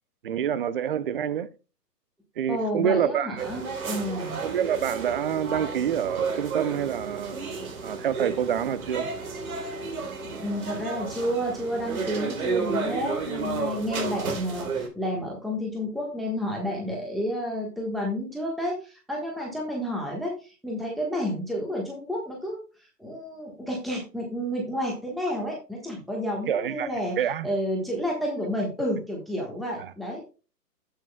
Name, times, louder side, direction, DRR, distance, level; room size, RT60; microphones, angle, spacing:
voice 1, 0.2-1.5 2.4-3.4 4.4-7.4 7.8-9.1 26.5-26.9 27.2-27.5 29.8-29.9, right 9 dB, 35° right, 0.7 m, -27 dB
voice 2, 2.5-4.4 10.4-27.2 27.4-30.2, equal, ahead, 1.3 m, -30 dB
sound 1, 3.4-14.9, right 4 dB, 60° right, 3.7 m, -32 dB
16.0 x 6.3 x 2.2 m
hypercardioid pair, 145°, 49 cm